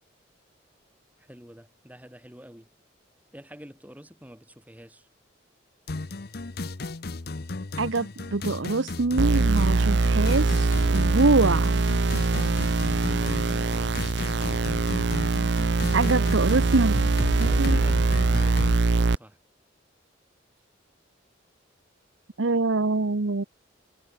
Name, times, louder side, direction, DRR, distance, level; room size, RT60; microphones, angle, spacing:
voice 1, 1.2-2.7 3.3-5.1 17.2-19.4, equal, 10° right, 6.0 m, -47 dB
sound 1, 5.9-18.8, left 2 dB, 50° left, 0.9 m, -34 dB
voice 2, 7.8-11.7 15.9-16.9 17.4-17.8 22.4-23.4, right 3 dB, 80° right, 1.0 m, -24 dB
sound 2, 9.2-19.2, right 3 dB, 60° right, 0.7 m, -23 dB
head